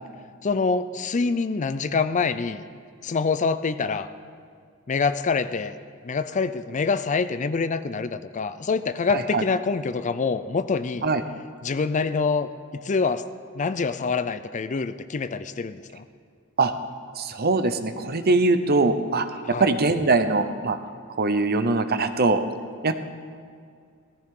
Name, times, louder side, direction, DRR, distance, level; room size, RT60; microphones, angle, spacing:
voice 1, 0.4-2.6 3.0-4.1 4.9-5.7 6.0-11.1 11.6-13.2 13.5-16.0 19.5-19.7, left 4 dB, 35° left, 12 dB, 0.4 m, -25 dB
voice 2, 9.1-9.4 11.0-11.2 16.6-16.7 17.2-19.3 19.6-20.8 21.2-22.4 22.8-22.9, right 3 dB, 50° right, 9 dB, 0.8 m, -22 dB
18.0 x 14.0 x 3.8 m, 2.2 s
head